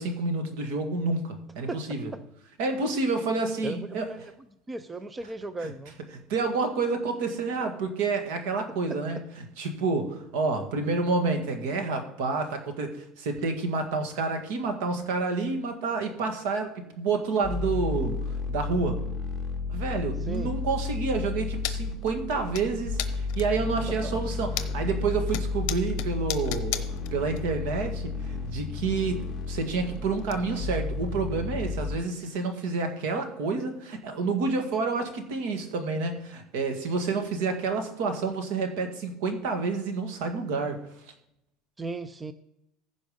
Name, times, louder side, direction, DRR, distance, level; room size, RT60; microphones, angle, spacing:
voice 1, 0.0-2.1 2.6-4.1 5.6-5.7 6.3-9.2 9.6-19.0 19.7-26.9 27.1-40.8, right 4 dB, 65° right, 5 dB, 1.9 m, -29 dB
voice 2, 3.6-4.2 4.7-5.9 8.9-9.0 20.2-20.5 24.0-24.2 41.8-42.3, right 2 dB, 10° right, 12 dB, 0.4 m, -36 dB
sound 1, 17.4-32.0, left 4 dB, 20° left, 1.5 m, -32 dB
sound 2, 21.6-21.8 22.1-22.6 23.0-23.6 24.1-24.9 25.3-27.4 27.7-27.8 29.0-29.1 29.4-30.3 30.6-30.7 31.1-31.2 31.7-31.8 32.3-32.4 33.6-33.7, left 13 dB, 55° left, 0.9 m, -34 dB
15.0 x 5.2 x 5.2 m, 0.81 s
cardioid pair, 175°, 0 cm